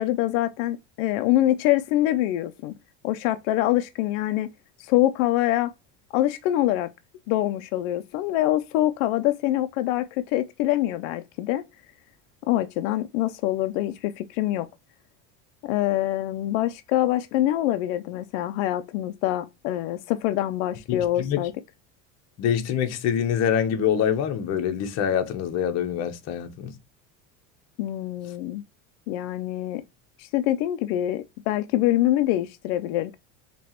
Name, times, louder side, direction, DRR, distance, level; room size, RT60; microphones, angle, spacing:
voice 1, 0.0-2.7 3.0-4.5 4.8-5.7 6.1-6.9 7.3-11.6 12.5-14.7 15.6-21.5 27.8-28.6 29.1-29.8 30.2-33.2, left 14 dB, 90° left, 0.5 m, -25 dB
voice 2, 20.9-21.4 22.4-26.7, left 9 dB, 45° left, 0.9 m, -25 dB
4.5 x 3.0 x 2.8 m
cardioid pair, 145°, 36 cm